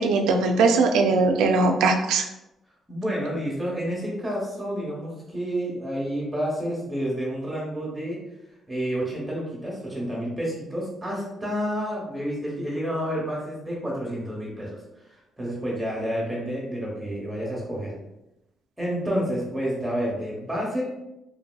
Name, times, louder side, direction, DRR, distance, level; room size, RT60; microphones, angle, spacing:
voice 1, 0.0-2.2, right 3 dB, 90° right, 4 dB, 0.3 m, -20 dB
voice 2, 2.9-8.2 8.7-14.8 15.1-17.9 18.8-20.8, equal, 15° right, -4 dB, 0.9 m, -29 dB
3.1 x 2.6 x 2.2 m, 0.90 s
cardioid pair, 90°, 0 cm